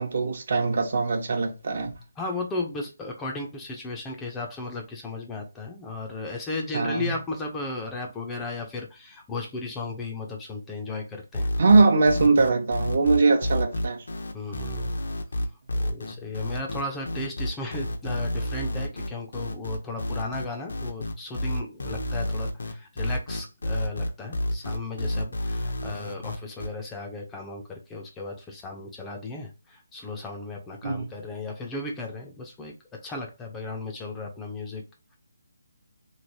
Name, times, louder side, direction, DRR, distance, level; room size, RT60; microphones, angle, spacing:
voice 1, 0.0-1.9 6.7-7.1 11.6-14.0 30.8-31.1, right 3 dB, 55° right, 0.8 m, -21 dB
voice 2, 2.2-11.5 14.3-14.9 15.4-15.5 15.7-32.7 33.0-34.8, left 3 dB, 10° left, 0.5 m, -35 dB
sound 1, 11.3-26.7, left 1 dB, 75° left, 0.8 m, -29 dB
3.1 x 2.8 x 2.6 m
hypercardioid pair, 165°, 0 cm